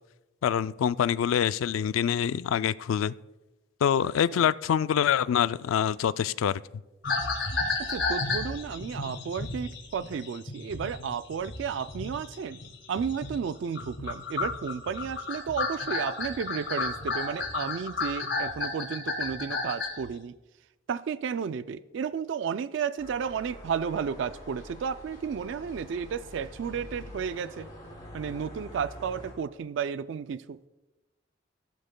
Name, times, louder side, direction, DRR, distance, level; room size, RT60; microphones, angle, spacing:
voice 1, 0.4-3.1 3.8-6.6, left 8 dB, 90° left, 17 dB, 0.3 m, -25 dB
voice 2, 4.0-4.4 7.8-12.6 12.9-20.3 20.9-27.7 28.1-30.6, right 7 dB, 65° right, 14 dB, 0.3 m, -33 dB
sound 1, 7.0-13.5 13.7-20.1, left 3 dB, 70° left, 1.8 m, -32 dB
sound 2, 23.0-29.3, equal, 20° left, 3.7 m, -45 dB
15.0 x 12.0 x 2.2 m, 1.1 s
head